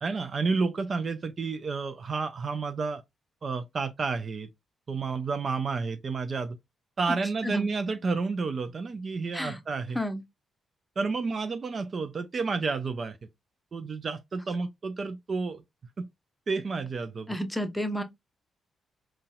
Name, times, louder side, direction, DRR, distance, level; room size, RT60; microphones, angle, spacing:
voice 1, 0.0-3.0 3.4-4.5 4.9-6.6 7.0-10.0 11.0-13.2 13.7-15.6 16.0-16.1 16.5-17.4, right 4 dB, 50° right, 0.4 m, -30 dB
voice 2, 17.3-18.0, equal, 5° left, 0.7 m, -31 dB
3.9 x 2.3 x 2.3 m
hypercardioid pair, 40°, 0 cm